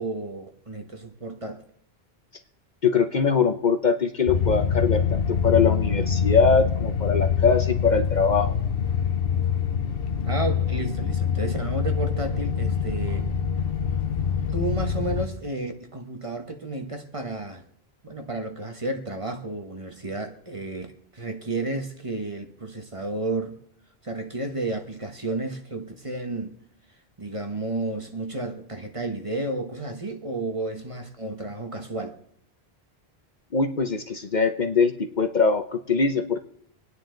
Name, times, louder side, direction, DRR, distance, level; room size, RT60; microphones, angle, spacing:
voice 1, 0.0-1.6 10.3-13.3 14.5-17.6 18.0-23.6 24.0-26.5 27.2-32.2, right 2 dB, 30° right, 1.3 m, -32 dB
voice 2, 2.8-8.5 33.5-36.4, left 5 dB, 45° left, 0.9 m, -22 dB
sound 1, 4.3-15.3, left 7 dB, 65° left, 1.2 m, -25 dB
25.5 x 9.7 x 3.9 m
omnidirectional pair, 1.1 m